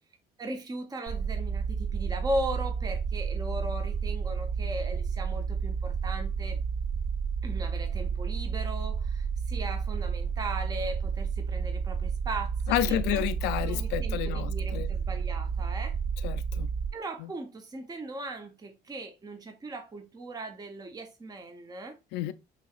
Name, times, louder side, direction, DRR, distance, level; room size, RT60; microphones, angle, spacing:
voice 1, 0.4-6.6 7.4-13.3 13.6-16.0 16.9-22.0, right 1 dB, 25° right, 0.8 m, -38 dB
sound 1, 1.1-16.9, right 6 dB, 55° right, 2.3 m, -31 dB
voice 2, 12.7-14.9 16.2-16.7 17.2-17.3 22.1-22.3, left 13 dB, 85° left, 0.4 m, -30 dB
6.3 x 2.9 x 2.4 m
cardioid pair, 110°, 17 cm